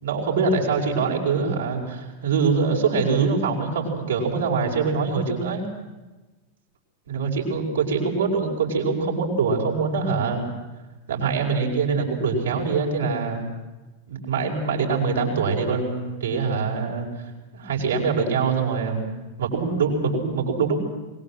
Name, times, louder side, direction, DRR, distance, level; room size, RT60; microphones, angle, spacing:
voice 1, 0.0-5.6 7.1-10.4 11.1-13.4 14.1-17.1 17.5-20.8, right 5 dB, 65° right, -1 dB, 5.5 m, -24 dB
23.0 x 20.5 x 7.7 m, 1.1 s
figure-of-eight pair, 90°, 0 cm